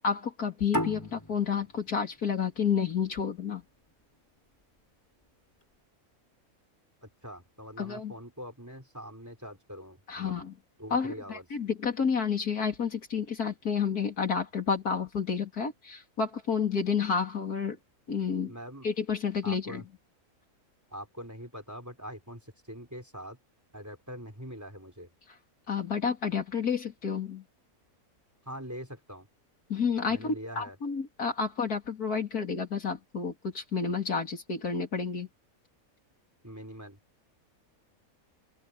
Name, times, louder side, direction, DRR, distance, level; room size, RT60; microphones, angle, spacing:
voice 1, 0.0-3.6 7.8-8.1 10.1-10.5 10.9-17.8 18.1-18.5 18.8-19.8 25.7-27.4 29.7-35.3, left 6 dB, 90° left, 3.7 m, -30 dB
sound 1, 0.7-3.9, equal, 10° left, 5.1 m, -36 dB
voice 2, 7.0-10.4 10.8-11.4 18.5-18.9 19.4-19.8 20.9-23.4 23.7-25.1 28.4-29.3 30.1-30.8 36.4-37.0, equal, 10° right, 4.1 m, -43 dB
open air
omnidirectional pair, 1.5 m